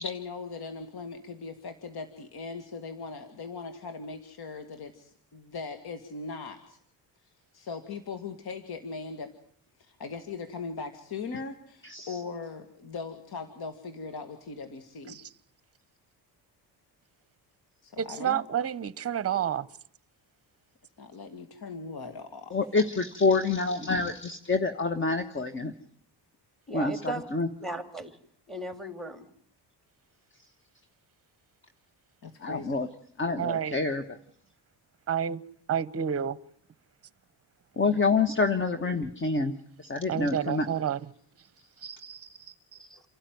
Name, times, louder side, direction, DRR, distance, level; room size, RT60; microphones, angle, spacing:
voice 1, 0.0-6.8 7.2-9.3 9.8-15.2 17.8-18.4 21.0-22.6 32.2-32.8 37.8-38.0 41.6-42.6, left 4 dB, 60° left, 2.3 m, -40 dB
voice 2, 11.8-12.2 22.5-25.7 26.7-27.5 32.4-32.9 33.2-34.2 37.8-39.5 39.8-40.7, left 4 dB, 30° left, 1.4 m, -27 dB
voice 3, 18.0-19.7 33.4-33.8 35.1-35.4 35.7-36.4 40.1-41.0 41.8-42.3, right 8 dB, 35° right, 1.0 m, -29 dB
voice 4, 26.7-27.2 27.6-28.1 28.5-29.2 42.8-43.0, right 2 dB, ahead, 3.3 m, -36 dB
29.0 x 12.5 x 9.5 m
cardioid pair, 100°, 42 cm